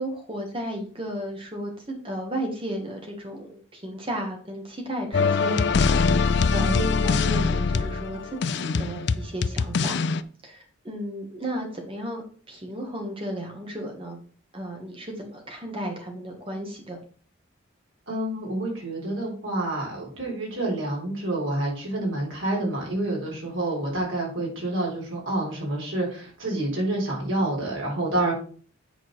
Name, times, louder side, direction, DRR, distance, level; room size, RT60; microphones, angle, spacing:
voice 1, 0.0-10.0 10.4-12.2 12.5-14.2 14.5-17.0, equal, 25° right, 2 dB, 1.8 m, -34 dB
sound 1, 5.1-10.2, left 4 dB, 55° left, 0.4 m, -23 dB
voice 2, 18.1-28.3, right 1 dB, 75° right, -3 dB, 4.0 m, -28 dB
8.4 x 4.4 x 4.8 m, 0.43 s
head